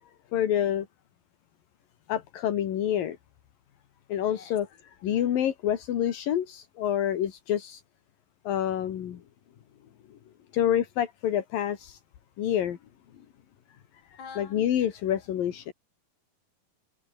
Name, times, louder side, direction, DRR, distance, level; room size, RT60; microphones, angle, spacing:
voice 1, 0.3-0.9 2.1-3.2 4.1-7.8 8.5-9.2 10.5-12.0 12.4-12.8 14.1-15.7, left 10 dB, 80° left, 3.7 m, -27 dB
voice 2, 14.2-14.7, left 6 dB, 60° left, 5.6 m, -44 dB
open air
omnidirectional pair, 4.0 m